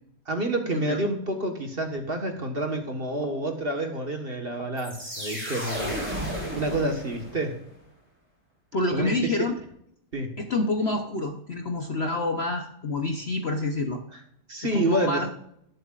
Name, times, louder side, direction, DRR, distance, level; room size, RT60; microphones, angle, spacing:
voice 1, 0.3-7.5 8.9-9.5 10.1-10.3 14.1-14.2 14.5-15.2, right 1 dB, 35° right, 4 dB, 1.6 m, -29 dB
sound 1, 4.8-7.6, equal, 5° right, 4.5 m, -33 dB
voice 2, 8.7-9.5 10.4-14.0 14.6-15.4, left 2 dB, 45° left, 4 dB, 1.0 m, -28 dB
19.0 x 7.8 x 2.5 m, 0.73 s
omnidirectional pair, 1.8 m